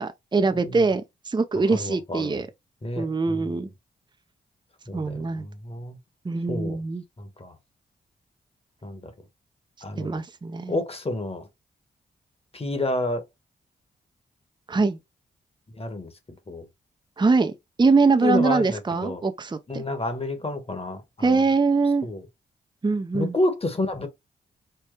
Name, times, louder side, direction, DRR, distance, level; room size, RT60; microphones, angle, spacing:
voice 1, 0.0-2.5 3.0-3.7 4.9-5.5 6.2-7.0 10.0-10.8 14.7-15.0 17.2-17.5 17.8-19.8 21.2-22.1 22.8-23.3, right 4 dB, 25° right, 0.6 m, -23 dB
voice 2, 1.7-2.4 2.8-3.7 4.9-6.0 6.5-6.8 7.2-7.5 8.8-9.1 9.8-10.2 10.7-11.5 12.5-13.2 15.7-16.6 18.2-19.2 19.7-21.4 22.0-22.2 23.1-24.1, left 2 dB, 30° left, 1.4 m, -30 dB
4.4 x 2.3 x 3.3 m
cardioid pair, 50°, 19 cm